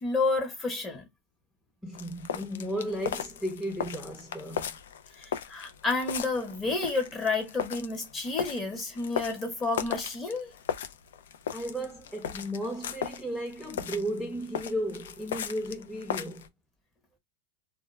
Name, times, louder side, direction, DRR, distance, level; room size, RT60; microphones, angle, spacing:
voice 1, 0.0-1.0 5.2-10.5, left 3 dB, 20° left, 0.9 m, -30 dB
voice 2, 1.8-4.8 11.5-16.5, equal, ahead, 0.6 m, -34 dB
sound 1, 1.9-16.5, left 8 dB, 85° left, 0.4 m, -37 dB
2.2 x 2.1 x 3.1 m
hypercardioid pair, 120°, 0 cm